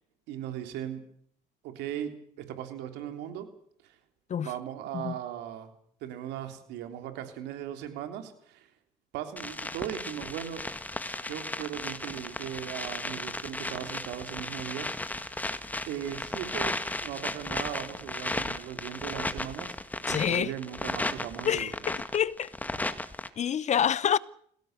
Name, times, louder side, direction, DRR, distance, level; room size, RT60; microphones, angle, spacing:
voice 1, 0.3-1.0 1.6-3.5 3.8-4.0 4.4-5.7 6.0-8.7 9.1-10.6 11.2-14.9 15.2-15.5 15.9-19.8 20.1-21.7, right 10 dB, 90° right, 3.5 m, -38 dB
sound 1, 9.4-23.3, left 2 dB, 10° left, 1.7 m, -35 dB
voice 2, 20.1-20.5 21.4-22.5 23.4-24.2, left 9 dB, 45° left, 0.9 m, -27 dB
26.5 x 17.0 x 6.8 m
cardioid pair, 110°, 17 cm